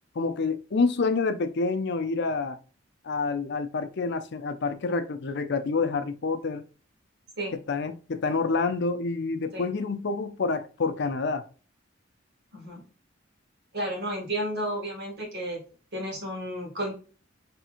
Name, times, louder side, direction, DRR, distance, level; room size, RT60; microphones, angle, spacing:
voice 1, 0.2-2.6 3.0-6.6 7.7-11.4, left 4 dB, 60° left, 0.5 m, -28 dB
voice 2, 13.7-15.6 15.9-16.9, right 1 dB, 55° right, 2.2 m, -32 dB
4.3 x 3.5 x 2.4 m
head